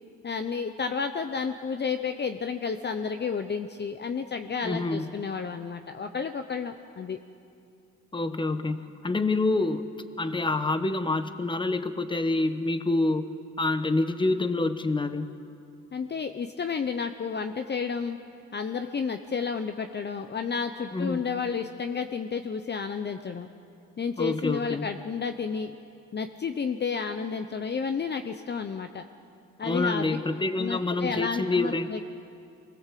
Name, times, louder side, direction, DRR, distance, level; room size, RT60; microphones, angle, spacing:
voice 1, 0.2-7.2 15.9-18.2 18.5-23.5 24.0-25.8 26.1-29.1 29.6-30.2 30.6-32.0, left 5 dB, 35° left, 7 dB, 0.9 m, -31 dB
voice 2, 4.6-5.1 8.1-9.9 10.2-13.3 13.6-15.3 20.9-21.3 24.2-24.9 29.6-31.9, left 2 dB, 15° left, 10 dB, 1.2 m, -27 dB
24.0 x 20.0 x 7.6 m, 2.5 s
cardioid pair, 90°, 30 cm